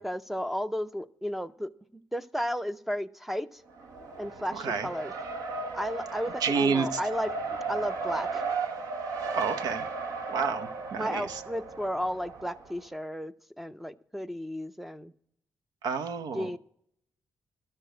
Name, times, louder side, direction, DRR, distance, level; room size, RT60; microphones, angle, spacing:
voice 1, 0.0-3.6 4.2-5.1 5.7-7.3 7.7-8.4 11.0-15.1 16.3-16.6, equal, 5° right, 12 dB, 0.5 m, -33 dB
Race car auto racing, 3.7-12.8, right 4 dB, 65° right, 1.3 m, -35 dB
voice 2, 4.5-4.9 6.4-6.9 9.3-9.9 10.3-11.4 15.8-16.6, right 5 dB, 90° right, 9 dB, 0.9 m, -29 dB
13.0 x 6.7 x 7.8 m, 0.69 s
wide cardioid pair, 160°, 6 cm